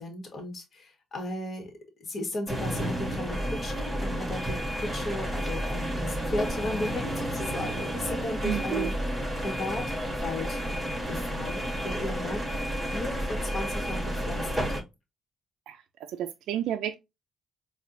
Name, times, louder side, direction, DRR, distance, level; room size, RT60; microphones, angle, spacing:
voice 1, 0.0-1.7 2.0-8.9 9.4-10.6 11.1-12.6 12.9-14.7, left 1 dB, 45° left, 1.4 m, -35 dB
sound 1, 2.5-14.8, equal, 10° right, 1.4 m, -31 dB
voice 2, 8.4-8.9 15.7-15.8 16.1-17.0, right 11 dB, 85° right, 0.3 m, -31 dB
4.3 x 2.4 x 2.6 m
cardioid pair, 90°, 0 cm